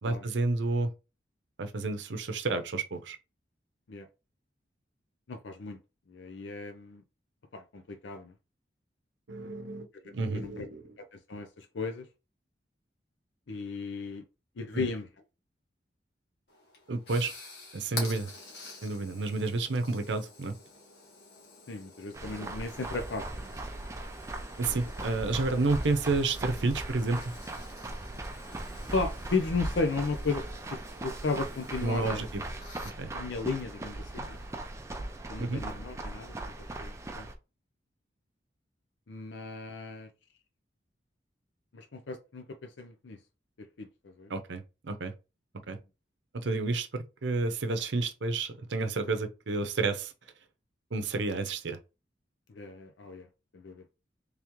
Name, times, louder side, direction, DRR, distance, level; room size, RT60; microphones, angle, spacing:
voice 1, 0.0-0.9 1.6-3.2 9.3-10.9 14.7-14.9 16.9-17.3 17.7-18.3 18.8-20.5 24.6-27.2 31.8-32.4 32.8-33.1 35.4-35.6 44.3-45.1 45.7-45.8 46.3-50.1 50.9-51.8, right 3 dB, 80° right, 0.6 m, -30 dB
voice 2, 5.3-5.8 6.1-7.0 7.5-8.3 10.0-10.1 10.4-10.7 11.3-12.1 13.5-14.2 14.6-15.1 21.7-23.5 24.7-24.8 28.9-30.4 30.7-32.2 33.1-34.4 35.3-36.5 36.8-37.3 39.1-40.1 41.7-43.2 43.8-44.3 52.6-53.3 53.5-53.8, left 3 dB, 85° left, 0.6 m, -35 dB
sound 1, 16.5-34.5, left 3 dB, 70° left, 1.5 m, -49 dB
sound 2, 22.1-37.3, right 2 dB, 15° right, 0.4 m, -39 dB
3.5 x 3.4 x 3.0 m
head